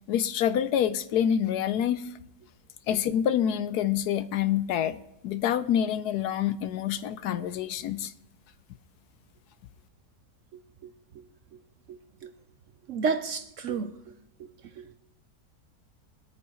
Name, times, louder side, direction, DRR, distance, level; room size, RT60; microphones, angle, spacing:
voice 1, 0.1-2.1 2.9-8.1, left 9 dB, 75° left, 1.1 m, -27 dB
voice 2, 11.9-12.3 12.9-14.1 14.8-15.0, right 5 dB, 65° right, 0.8 m, -32 dB
23.5 x 8.8 x 3.1 m
omnidirectional pair, 1.8 m